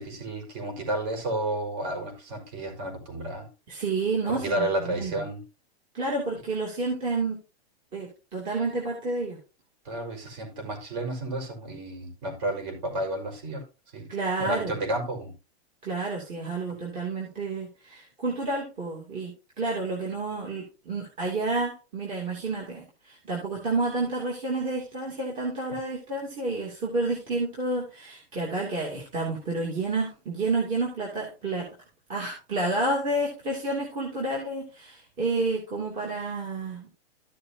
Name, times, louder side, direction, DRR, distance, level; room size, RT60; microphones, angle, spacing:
voice 1, 0.0-3.4 4.3-5.4 9.9-13.6 13.9-14.1 14.4-15.3, right 1 dB, 40° right, 4 dB, 5.2 m, -31 dB
voice 2, 3.7-5.2 5.9-7.4 7.9-9.4 14.1-14.7 15.8-31.7 32.1-36.9, right 3 dB, 25° right, -2 dB, 2.8 m, -30 dB
14.0 x 6.7 x 2.8 m, 0.30 s
supercardioid pair, 165°, 32 cm